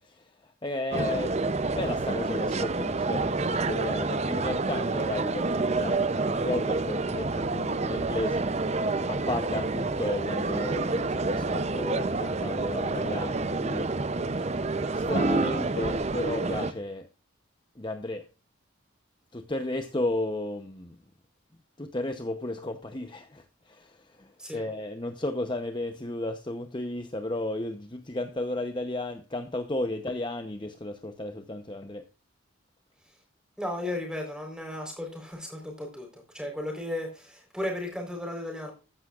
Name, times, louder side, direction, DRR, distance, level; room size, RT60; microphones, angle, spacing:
voice 1, 0.0-8.5 9.1-13.9 14.4-17.1 17.8-18.3 19.3-21.0 21.8-32.0, left 1 dB, 20° left, 0.8 m, -34 dB
sound 1, 0.9-16.7, right 3 dB, 30° right, 0.6 m, -28 dB
voice 2, 33.6-38.7, left 1 dB, 5° right, 4.0 m, -35 dB
14.5 x 11.0 x 2.5 m
head